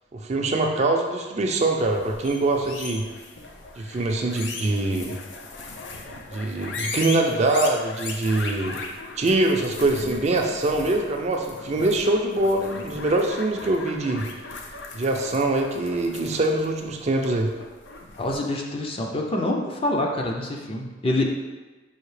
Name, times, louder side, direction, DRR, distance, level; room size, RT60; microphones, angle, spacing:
voice 1, 0.1-3.0 3.8-5.2 6.3-8.8 9.2-14.2 14.9-17.5, right 2 dB, 40° right, 2 dB, 0.4 m, -23 dB
sound 1, 1.8-18.3, left 3 dB, 85° left, 0.5 m, -38 dB
voice 2, 18.2-21.2, left 1 dB, 30° left, 1 dB, 0.5 m, -26 dB
5.6 x 2.7 x 3.2 m, 1.2 s
head